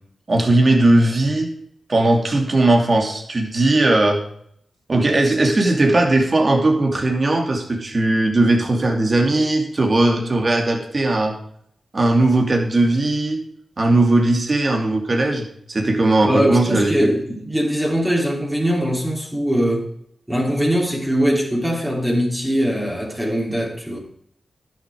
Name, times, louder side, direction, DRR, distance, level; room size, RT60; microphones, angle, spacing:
voice 1, 0.3-1.5 1.9-4.2 4.9-11.3 11.9-13.4 13.8-17.1, right 2 dB, 50° right, 2 dB, 2.8 m, -18 dB
voice 2, 16.2-19.9 20.3-24.0, equal, 10° right, -2 dB, 3.4 m, -21 dB
11.0 x 7.2 x 4.8 m, 0.67 s
cardioid pair, 45°, 0 cm